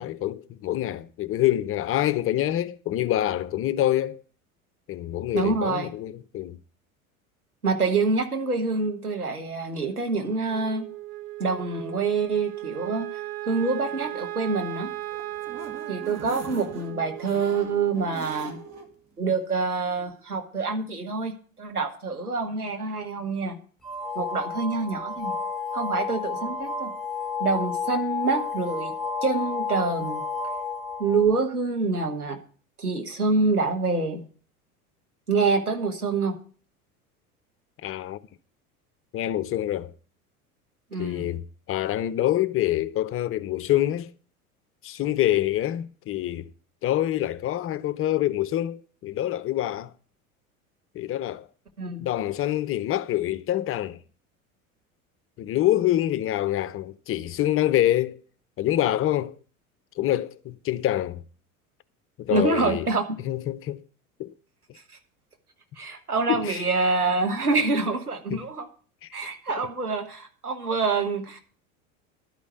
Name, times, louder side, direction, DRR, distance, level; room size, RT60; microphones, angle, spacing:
voice 1, 0.0-4.2 4.9-6.6 37.8-38.2 39.1-39.9 41.0-44.1 44.8-46.5 46.8-49.9 50.9-51.5 52.0-54.0 55.4-58.2 58.6-59.3 60.0-61.2 62.2-62.9 63.2-63.8 64.2-64.3 66.3-66.6 68.3-68.4 69.0-69.1, left 13 dB, 30° left, 0.6 m, -26 dB
voice 2, 5.3-5.9 7.6-10.9 11.4-13.1 13.5-14.9 15.9-18.6 19.2-23.5 24.1-25.3 25.7-26.9 27.4-28.9 29.2-30.2 31.0-32.4 32.8-34.2 35.3-36.4 40.9-41.3 51.8-52.0 62.3-63.2 65.8-68.7 69.1-71.4, right 4 dB, 90° right, 1.5 m, -26 dB
Wind instrument woodwind instrument, 10.5-18.9, right 16 dB, 60° right, 1.1 m, -37 dB
sound 1, 14.9-18.9 19.3-19.4 19.7-19.8, right 4 dB, 40° right, 2.3 m, -42 dB
sound 2, 23.8-31.4, left 4 dB, ahead, 1.3 m, -31 dB
12.0 x 5.2 x 8.1 m
figure-of-eight pair, 75°, 44 cm